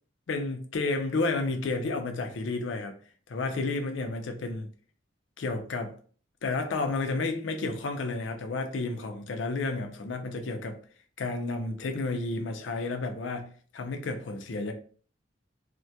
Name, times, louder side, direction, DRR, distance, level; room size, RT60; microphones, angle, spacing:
voice 1, 0.3-3.0 3.3-4.7 5.4-6.0 6.4-10.8 11.2-14.7, left 3 dB, 75° left, 0.4 m, -31 dB
2.2 x 2.1 x 2.7 m
head